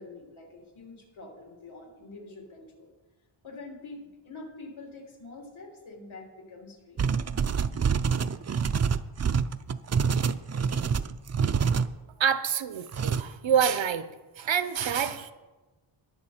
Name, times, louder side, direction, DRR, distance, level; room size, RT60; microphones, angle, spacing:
voice 1, 0.0-2.9 3.4-7.2, left 3 dB, 80° left, -1 dB, 3.8 m, -46 dB
sound 1, 7.0-11.9 12.9-13.2, right 6 dB, 35° right, 0.5 m, -26 dB
voice 2, 12.2-14.1 14.4-15.3, right 8 dB, 70° right, 13 dB, 0.9 m, -26 dB
21.0 x 7.2 x 4.4 m, 1.2 s
wide cardioid pair, 85°, 47 cm